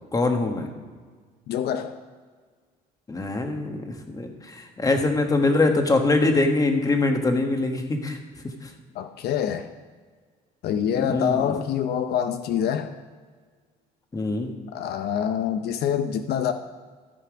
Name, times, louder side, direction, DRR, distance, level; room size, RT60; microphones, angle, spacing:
voice 1, 0.1-0.7 3.1-3.8 4.1-8.2 11.0-11.4 14.1-14.5, left 2 dB, 20° left, 4 dB, 1.4 m, -23 dB
voice 2, 1.5-1.9 9.0-9.7 10.6-12.9 14.7-16.5, left 9 dB, 70° left, 8 dB, 0.6 m, -26 dB
14.0 x 5.8 x 5.0 m, 1.6 s
cardioid pair, 110°, 17 cm